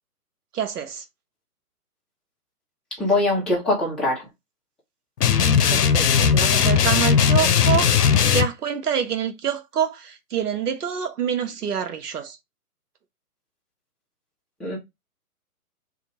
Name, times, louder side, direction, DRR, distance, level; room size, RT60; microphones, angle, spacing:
voice 1, 0.5-1.0 5.7-7.9 8.2-12.4, right 8 dB, 80° right, 1.0 m, -26 dB
voice 2, 3.0-4.2 14.6-14.8, left 2 dB, ahead, 0.9 m, -22 dB
sound 1, 5.2-8.5, left 7 dB, 85° left, 0.7 m, -18 dB
2.7 x 2.7 x 4.2 m
hypercardioid pair, 140°, 46 cm